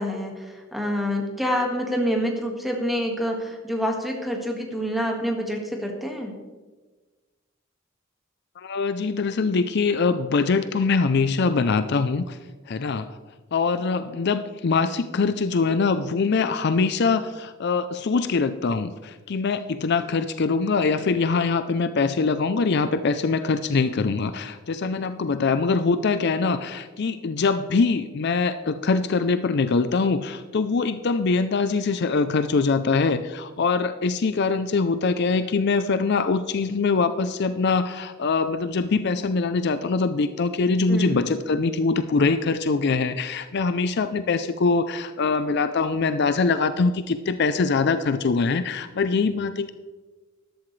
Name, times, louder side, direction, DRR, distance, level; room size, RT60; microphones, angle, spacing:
voice 1, 0.0-6.3 40.9-41.2, equal, ahead, 1 dB, 1.8 m, -27 dB
voice 2, 8.6-12.4 12.7-13.2 13.5-49.7, left 4 dB, 55° left, 11 dB, 0.5 m, -23 dB
13.5 x 11.5 x 3.2 m, 1.3 s
head